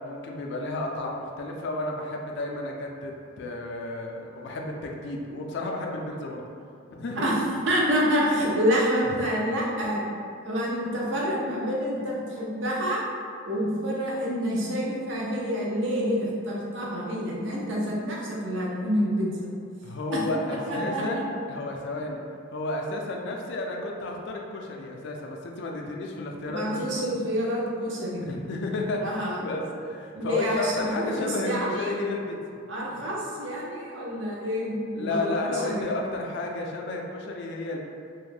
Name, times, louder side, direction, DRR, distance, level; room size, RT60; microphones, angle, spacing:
voice 1, 0.0-6.5 6.9-7.3 9.1-9.3 19.8-22.2 22.5-26.9 28.2-32.6 34.9-37.8, left 2 dB, 55° left, 1 dB, 0.3 m, -32 dB
voice 2, 7.7-10.0 10.4-13.0 13.4-19.5 20.1-20.2 20.7-21.2 26.5-28.3 29.0-29.4 30.1-31.9 32.7-35.8, equal, 60° right, -4 dB, 0.5 m, -27 dB
2.4 x 2.1 x 3.1 m, 2.3 s
head